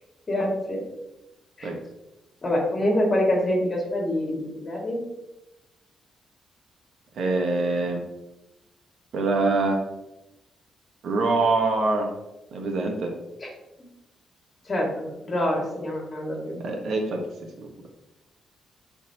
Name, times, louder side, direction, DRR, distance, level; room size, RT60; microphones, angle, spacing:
voice 1, 0.3-0.8 1.6-1.7 2.4-5.0 13.4-13.5 13.8-13.9 14.7-16.6, left 1 dB, 30° left, -1 dB, 2.5 m, -26 dB
voice 2, 7.1-8.0 9.1-9.8 11.0-12.1 12.5-13.1 16.6-17.2, right 3 dB, 65° right, 2 dB, 1.5 m, -24 dB
13.0 x 4.4 x 3.0 m, 0.96 s
cardioid pair, 115°, 0 cm